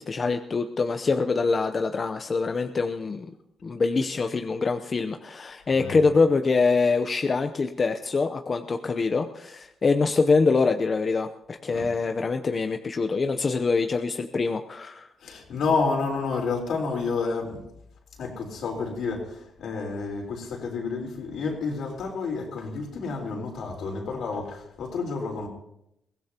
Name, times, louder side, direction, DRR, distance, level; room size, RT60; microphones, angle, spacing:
voice 1, 0.0-3.3 3.6-15.0, left 4 dB, 40° left, 7 dB, 0.7 m, -24 dB
voice 2, 5.7-6.1 11.7-11.9 15.2-17.6 18.2-25.5, left 4 dB, 75° left, 0 dB, 4.0 m, -30 dB
22.5 x 16.5 x 2.9 m, 0.81 s
cardioid pair, 95°, 0 cm